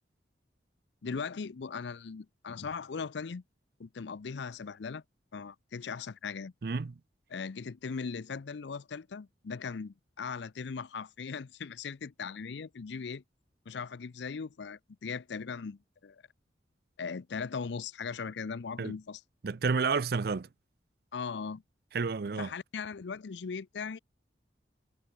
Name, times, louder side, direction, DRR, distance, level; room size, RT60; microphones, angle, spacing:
voice 1, 1.0-3.4 3.8-5.0 5.3-6.5 7.3-13.2 13.7-16.2 17.0-19.2 21.1-21.6 22.4-24.0, left 5 dB, 75° left, 0.5 m, -39 dB
voice 2, 6.6-6.9 18.8-19.0 19.4-20.5 21.9-22.5, right 4 dB, 55° right, 0.5 m, -30 dB
head